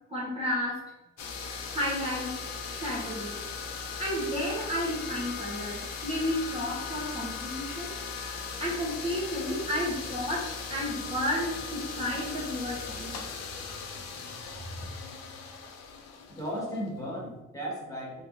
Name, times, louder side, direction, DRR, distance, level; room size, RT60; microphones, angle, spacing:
voice 1, 0.1-0.8 1.7-2.4 2.7-3.3 4.0-7.9 8.6-13.2, equal, 20° right, -7 dB, 0.9 m, -32 dB
sound 1, 1.2-16.9, left 5 dB, 60° left, 0.6 m, -38 dB
voice 2, 16.3-18.2, equal, 10° left, -6 dB, 1.5 m, -35 dB
3.4 x 3.0 x 2.5 m, 0.96 s
cardioid pair, 90°, 30 cm